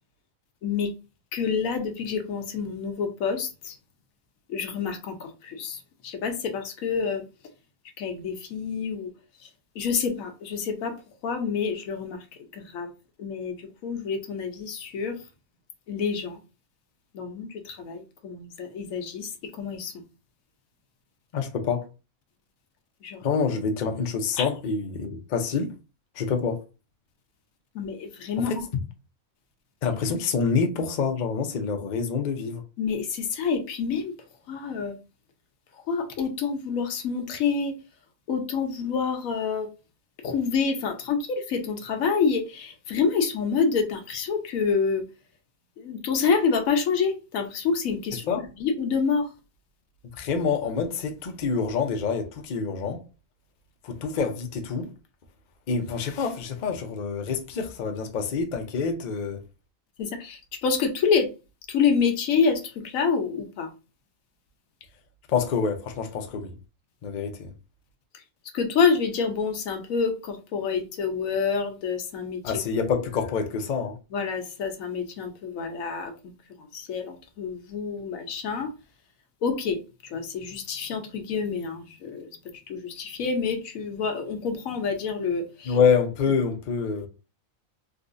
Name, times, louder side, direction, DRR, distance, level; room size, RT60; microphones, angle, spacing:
voice 1, 0.6-0.9 1.3-3.8 4.5-7.2 8.0-9.1 9.4-9.5 9.7-11.0 11.2-12.3 12.5-12.9 13.2-15.2 15.9-16.4 17.1-20.0 23.0-23.2 24.4-24.5 27.7-28.5 32.8-34.1 34.5-35.0 35.8-37.8 38.3-39.7 40.2-45.1 45.8-48.3 48.6-49.3 60.0-61.3 61.7-63.7 68.5-72.5 74.1-76.1 76.6-78.7 79.4-82.3 82.7-85.8, left 5 dB, 80° left, 1.1 m, -27 dB
voice 2, 21.3-21.9 23.2-25.7 26.2-26.6 28.5-28.6 29.8-32.6 48.3-48.4 50.1-53.0 53.8-54.9 55.7-59.4 65.3-66.6 67.0-67.5 72.4-74.0 85.7-87.1, left 5 dB, 55° left, 0.5 m, -26 dB
3.6 x 2.4 x 2.5 m
omnidirectional pair, 1.4 m